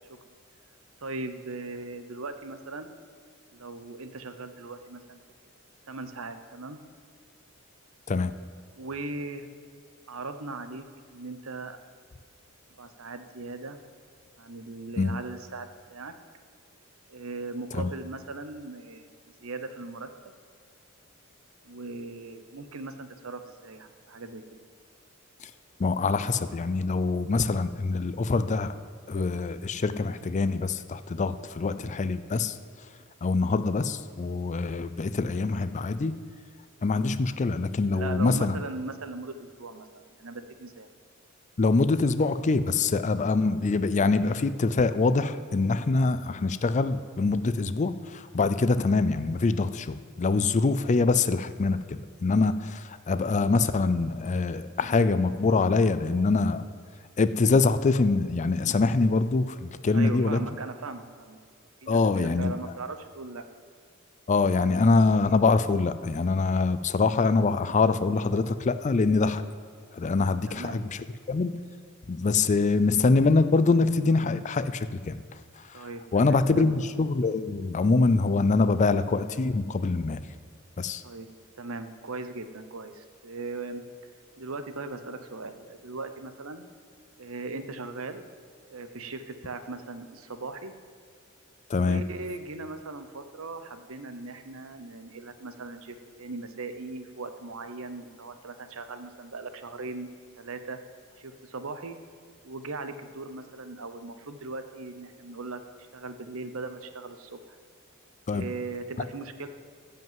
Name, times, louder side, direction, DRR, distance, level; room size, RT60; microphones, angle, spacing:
voice 1, 1.0-2.9 3.5-5.2 5.9-6.8 8.8-9.5 10.1-11.8 12.8-13.8 14.4-16.1 17.1-19.1 19.4-20.3 21.6-24.7 37.9-40.9 59.9-61.4 61.8-63.4 70.5-70.8 75.7-76.8 81.0-81.3 81.5-83.8 84.4-86.7 87.2-88.2 88.7-90.7 91.7-100.1 100.4-100.8 101.2-102.0 102.4-105.6 105.9-107.6 108.3-109.5, right 3 dB, 70° right, 9 dB, 0.9 m, -39 dB
voice 2, 25.8-28.7 29.1-32.6 33.2-36.1 36.8-38.6 41.6-56.6 57.2-60.4 61.9-62.5 64.3-69.4 69.9-71.0 71.3-71.5 72.1-75.2 75.7-75.9 76.1-80.2 80.8-81.0 91.7-92.0 108.3-108.5, left 3 dB, 35° left, 12 dB, 0.4 m, -24 dB
15.0 x 5.4 x 7.5 m, 2.1 s
head